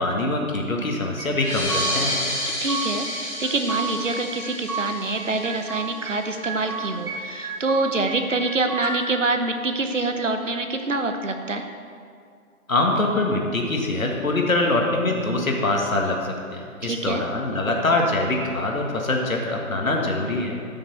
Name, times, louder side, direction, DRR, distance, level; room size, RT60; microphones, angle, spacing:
voice 1, 0.0-2.2 12.7-20.6, left 2 dB, 65° left, 1 dB, 1.8 m, -24 dB
sound 1, 1.2-2.2 2.4-3.2 3.4-4.9 5.2-6.2 6.4-7.2 7.4-9.0, right 4 dB, 80° right, 2.1 m, -31 dB
sound 2, 1.3-6.4, left 1 dB, 5° left, 2.7 m, -30 dB
voice 2, 2.6-11.6 16.8-17.2, right 3 dB, 55° right, 6 dB, 0.9 m, -26 dB
13.5 x 6.2 x 4.3 m, 2.3 s
figure-of-eight pair, 170°, 44 cm